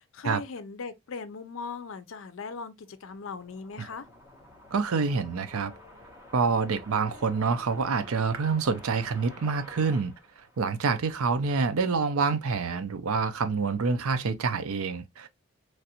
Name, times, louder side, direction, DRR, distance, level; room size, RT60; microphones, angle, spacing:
voice 1, 0.0-4.1, left 4 dB, 65° left, 0.5 m, -39 dB
sound 1, 2.8-11.1, left 1 dB, 15° right, 1.1 m, -50 dB
voice 2, 4.7-5.7 6.3-10.1 10.6-15.3, right 5 dB, 85° right, 0.5 m, -27 dB
3.2 x 2.5 x 2.7 m
head